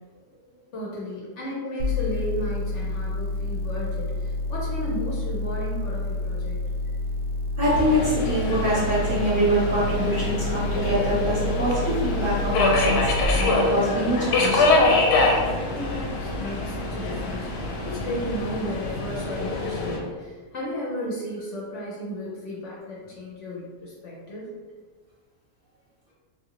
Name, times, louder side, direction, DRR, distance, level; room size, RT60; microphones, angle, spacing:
voice 1, 0.7-6.6 15.7-24.5, equal, 60° left, -5 dB, 0.9 m, -34 dB
sound 1, 1.8-13.2, left 2 dB, 75° right, 1.0 m, -29 dB
Subway metro underground, 7.6-20.0, left 2 dB, 90° left, 1.1 m, -25 dB
voice 2, 7.6-14.6, right 1 dB, 50° right, -9 dB, 0.7 m, -24 dB
2.7 x 2.6 x 2.9 m, 1.4 s
omnidirectional pair, 1.7 m